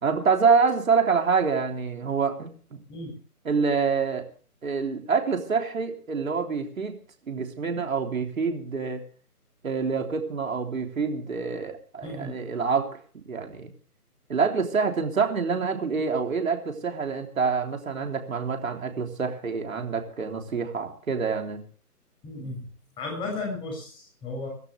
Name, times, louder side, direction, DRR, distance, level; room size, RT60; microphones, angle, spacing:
voice 1, 0.0-2.8 3.5-4.3 4.6-6.9 7.3-9.0 9.6-13.0 13.3-13.7 14.3-21.6, right 5 dB, 60° right, 3 dB, 3.6 m, -26 dB
voice 2, 12.0-12.4 22.2-22.7 23.0-24.5, left 2 dB, 10° left, 0 dB, 6.6 m, -34 dB
24.5 x 12.5 x 3.4 m, 0.43 s
figure-of-eight pair, 155°, 46 cm